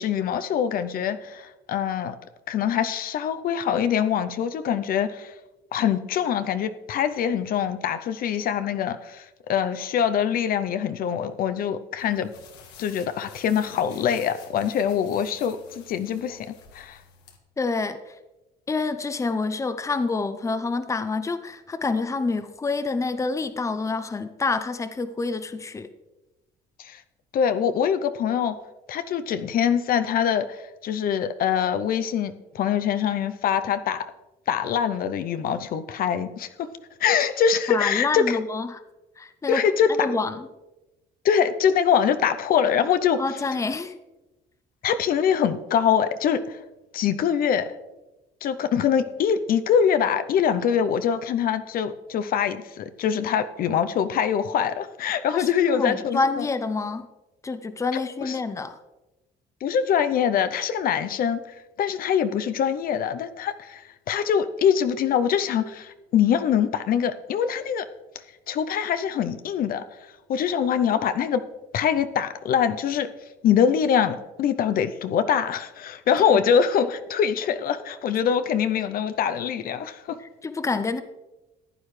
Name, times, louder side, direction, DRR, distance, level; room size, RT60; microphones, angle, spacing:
voice 1, 0.0-2.2 2.5-5.3 5.7-12.3 12.8-17.0 26.8-27.0 27.3-28.6 28.9-34.1 34.5-36.7 37.0-38.4 39.5-40.1 41.2-43.2 44.8-46.6 46.9-47.7 48.4-56.5 58.2-58.4 59.6-61.4 61.8-67.9 68.5-69.8 70.3-71.4 71.7-73.1 73.4-80.2, left 8 dB, 60° left, 11 dB, 0.6 m, -24 dB
sound 1, 12.0-17.4, left 6 dB, 90° left, 1.7 m, -50 dB
voice 2, 17.6-18.0 18.7-25.9 37.7-38.8 39.2-39.6 39.9-40.4 43.2-43.9 55.3-57.1 57.4-58.8 76.3-76.5 80.4-81.0, left 3 dB, 20° left, 11 dB, 0.7 m, -27 dB
14.5 x 9.5 x 3.2 m, 1.0 s
cardioid pair, 110°, 17 cm